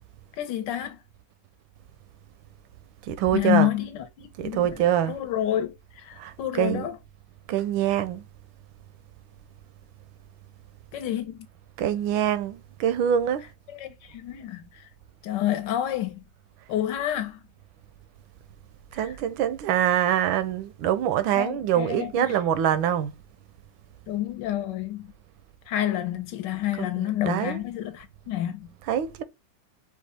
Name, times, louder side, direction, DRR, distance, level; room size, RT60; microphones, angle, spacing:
voice 1, 0.4-1.0 3.3-4.8 5.1-7.0 10.9-11.5 13.7-14.9 15.2-16.2 16.7-17.4 18.9-19.1 21.3-22.4 24.1-25.1 25.7-28.7, left 12 dB, 70° left, 1.3 m, -29 dB
voice 2, 3.1-3.7 4.4-5.2 6.2-6.9 7.5-8.2 11.8-13.4 18.9-23.1 26.8-27.6 28.9-29.2, right 10 dB, 85° right, 1.4 m, -25 dB
4.8 x 2.4 x 4.1 m
omnidirectional pair, 2.1 m